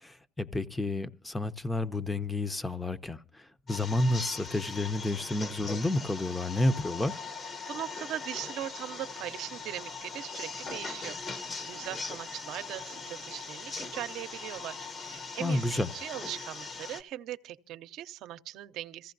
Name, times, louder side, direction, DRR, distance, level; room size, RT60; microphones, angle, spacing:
voice 1, 0.0-7.1 15.4-15.9, left 2 dB, 15° left, 0.7 m, -30 dB
sound 1, 3.7-17.0, left 4 dB, 40° left, 1.1 m, -40 dB
voice 2, 7.7-19.1, right 13 dB, 75° right, 0.7 m, -40 dB
26.0 x 15.0 x 2.6 m
cardioid pair, 90°, 0 cm